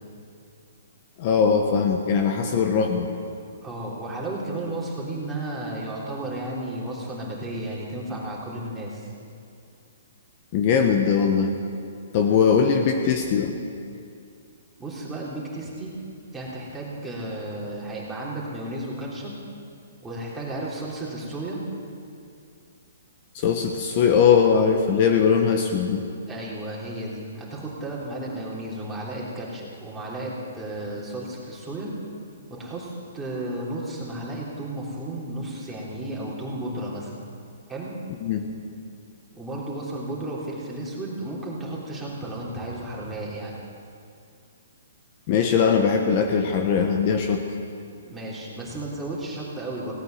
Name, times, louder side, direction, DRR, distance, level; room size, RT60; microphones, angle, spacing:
voice 1, 1.2-3.1 10.5-11.5 12.1-13.5 23.3-26.0 38.2-38.5 45.3-47.4, left 6 dB, 40° left, 4 dB, 1.1 m, -20 dB
voice 2, 3.6-9.1 14.8-15.9 16.3-19.3 20.0-21.6 26.3-31.9 32.5-37.1 37.7-37.9 39.3-43.6 48.0-49.9, right 1 dB, 10° right, -6 dB, 3.4 m, -33 dB
17.0 x 9.0 x 7.9 m, 2.4 s
hypercardioid pair, 145°, 0 cm